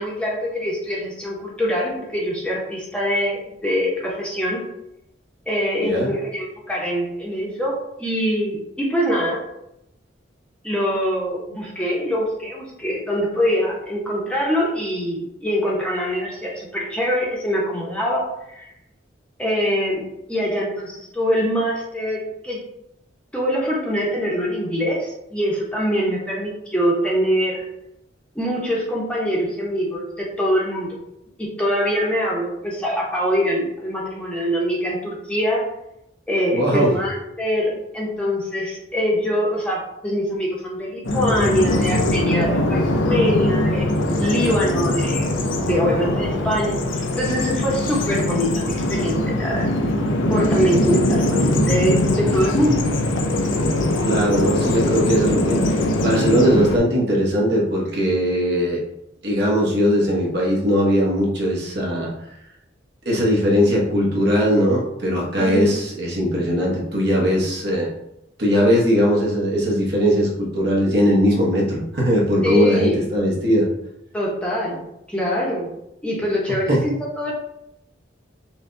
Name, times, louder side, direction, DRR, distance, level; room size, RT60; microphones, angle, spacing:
voice 1, 0.0-4.6 5.5-9.4 10.6-18.7 19.4-20.0 20.3-22.6 23.3-27.6 28.3-31.0 31.4-35.7 36.3-45.3 45.6-49.7 50.3-52.9 65.4-65.7 72.4-73.0 74.1-74.8 75.1-75.7 76.0-77.3, equal, 5° left, -5 dB, 0.7 m, -23 dB
voice 2, 36.5-36.9 54.0-58.8 59.2-62.1 63.0-67.9 68.4-73.7 76.7-76.8, equal, 55° right, -3 dB, 1.0 m, -19 dB
Bird vocalization bird call bird song, 41.0-56.8, left 1 dB, 85° left, 0.5 m, -21 dB
5.5 x 2.2 x 2.6 m, 0.83 s
head